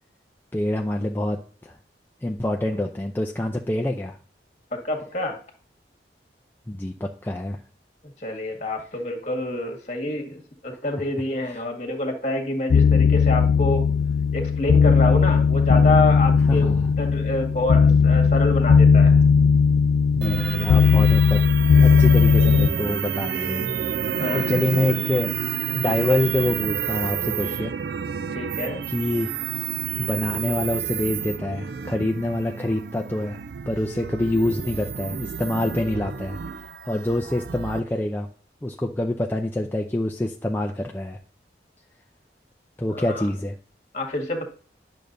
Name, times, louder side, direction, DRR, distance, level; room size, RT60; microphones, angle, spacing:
voice 1, 0.5-1.7 2.2-4.2 6.7-7.6 10.9-11.0 16.5-16.9 20.1-21.4 21.8-23.7 24.0-25.3 25.7-27.7 28.9-29.3 30.0-33.4 33.7-36.4 36.9-38.3 38.6-41.2 42.8-43.5, left 1 dB, 10° left, 1 dB, 0.4 m, -26 dB
voice 2, 4.7-5.4 8.2-13.8 14.3-19.1 23.4-23.5 24.0-24.9 28.3-28.8 42.9-43.3 43.9-44.4, left 1 dB, 40° left, 2 dB, 1.6 m, -27 dB
sound 1, 12.7-22.7, left 5 dB, 80° left, 0.3 m, -17 dB
sound 2, 20.2-37.8, right 8 dB, 65° right, 0.4 m, -30 dB
10.5 x 6.5 x 2.6 m, 0.43 s
head